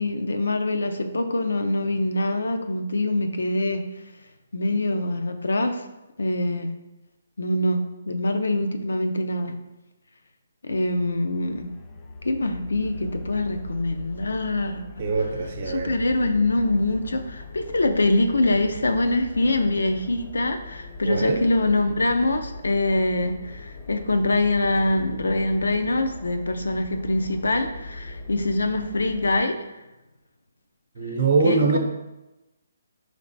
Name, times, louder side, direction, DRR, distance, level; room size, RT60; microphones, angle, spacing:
voice 1, 0.0-3.8 4.5-5.8 6.2-6.7 7.4-9.6 10.6-11.7 12.2-14.8 15.7-29.6 31.4-31.8, left 2 dB, 90° left, 6 dB, 0.4 m, -24 dB
sound 1, 10.7-29.4, left 2 dB, 25° left, 0.3 m, -40 dB
voice 2, 15.0-15.9 21.0-21.4 30.9-31.8, right 4 dB, 45° right, 2 dB, 0.7 m, -23 dB
4.9 x 3.3 x 2.6 m, 1.0 s
hypercardioid pair, 155°, 0 cm